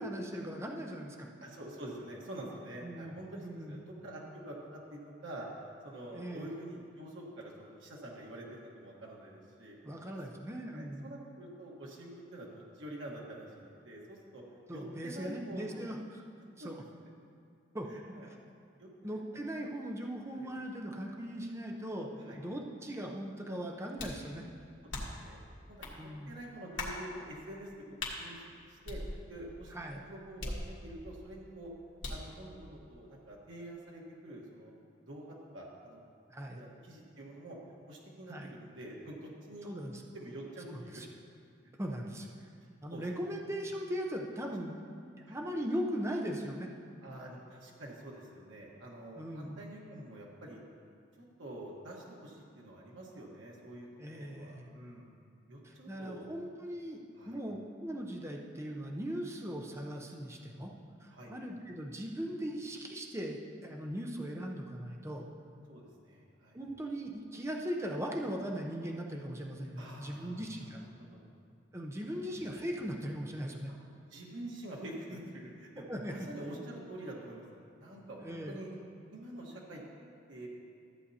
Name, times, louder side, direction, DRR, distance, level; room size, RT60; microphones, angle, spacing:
voice 1, 0.0-1.3 2.8-3.2 3.4-3.8 6.1-6.5 9.8-11.1 14.7-16.2 16.6-16.8 17.7-18.4 19.0-24.5 25.9-26.3 29.7-30.0 36.3-36.6 38.3-38.5 39.6-40.0 40.7-41.1 41.8-42.3 42.8-46.7 49.2-49.6 54.0-54.7 55.6-57.0 57.3-60.7 61.0-65.3 66.5-70.8 71.7-73.7 75.9-76.6 78.2-78.6, equal, 15° right, 0 dB, 0.6 m, -39 dB
voice 2, 1.4-5.5 5.8-9.8 10.7-14.4 14.7-15.9 16.6-16.7 17.9-18.3 18.8-19.2 20.4-20.5 22.2-22.4 24.8-25.4 25.7-29.0 29.3-31.7 32.1-34.7 35.1-36.0 36.5-37.6 37.9-39.8 40.1-41.0 42.4-42.5 42.9-43.3 45.3-45.4 47.0-50.6 51.2-55.1 55.5-56.3 57.2-57.4 61.1-61.3 65.7-66.6 69.8-71.3 72.1-72.2 74.1-77.4 77.8-78.7 79.1-79.8 80.3-80.5, right 1 dB, 85° right, -3 dB, 1.4 m, -47 dB
sound 1, 24.0-24.3 24.9-25.3 25.8-26.0 26.8-27.0 28.0-28.2 28.9-29.5 30.4-31.1 32.0-32.3, left 2 dB, 90° left, 1.5 m, -39 dB
13.5 x 7.9 x 2.8 m, 2.4 s
head